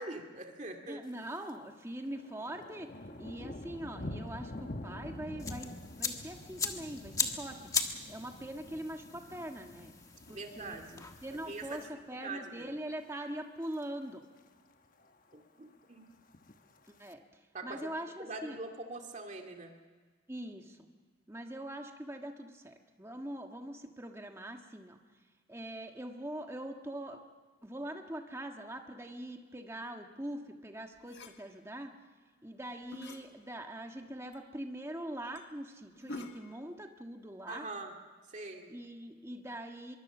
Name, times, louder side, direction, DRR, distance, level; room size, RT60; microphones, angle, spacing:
voice 1, 0.0-1.0 3.4-3.6 10.3-11.8 12.1-12.7 15.3-16.1 17.5-19.7 37.5-37.9 38.3-38.7, right 2 dB, 40° right, 3 dB, 2.2 m, -44 dB
voice 2, 0.9-7.6 8.1-9.9 10.3-10.8 11.2-14.2 16.9-17.2 17.6-18.6 20.3-20.9 21.3-25.0 25.5-27.2 27.6-31.9 32.4-37.7 38.7-40.0, right 1 dB, 15° right, 4 dB, 1.5 m, -42 dB
Thunder, 1.0-1.6 1.9-12.2 12.6-12.9 13.4-13.8 14.1-14.2 14.4-14.5 14.8-15.4 16.2-17.1, left 1 dB, 45° left, 1.1 m, -47 dB
sound 1, 5.4-11.9, left 4 dB, 15° left, 1.3 m, -39 dB
sound 2, 31.0-31.4 32.7-33.3 33.8-33.9 34.3-34.4 34.8-34.9 35.3-35.5 35.9-36.6, left 1 dB, 65° left, 1.7 m, -46 dB
24.5 x 23.0 x 6.1 m, 1.4 s
head